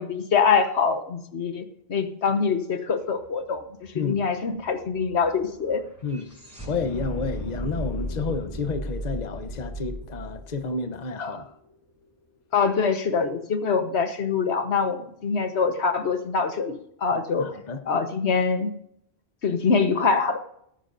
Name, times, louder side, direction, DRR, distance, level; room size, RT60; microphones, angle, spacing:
voice 1, 0.0-3.6 4.0-5.8 11.2-11.4 12.5-17.5 17.9-18.7 19.4-20.4, left 5 dB, 80° left, 1.5 m, -24 dB
sound 1, 3.2-3.3 3.5-11.7, equal, 15° left, 5.7 m, -36 dB
voice 2, 6.7-11.5 17.1-17.8, left 4 dB, 45° left, 1.0 m, -31 dB
18.5 x 9.8 x 2.6 m
omnidirectional pair, 1.1 m